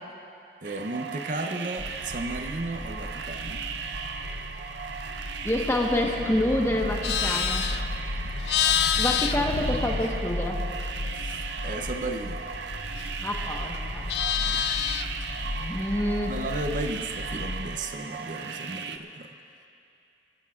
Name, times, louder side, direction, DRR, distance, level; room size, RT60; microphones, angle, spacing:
voice 1, 0.6-3.6 11.1-12.4 14.5-14.6 16.3-19.3, right 2 dB, 45° right, 6 dB, 0.6 m, -34 dB
sound 1, 0.6-19.0, right 6 dB, 85° right, 0.6 m, -37 dB
sound 2, 1.8-17.8, left 1 dB, 45° left, 1.0 m, -35 dB
voice 2, 5.4-7.7 9.0-10.6 13.2-14.3 15.5-16.4, left 1 dB, 15° left, 0 dB, 1.1 m, -27 dB
Livestock farm animals working animals, 6.8-10.5 10.8-13.3 13.6-15.2, left 9 dB, 65° left, 0.4 m, -29 dB
28.5 x 13.0 x 2.4 m, 2.6 s
head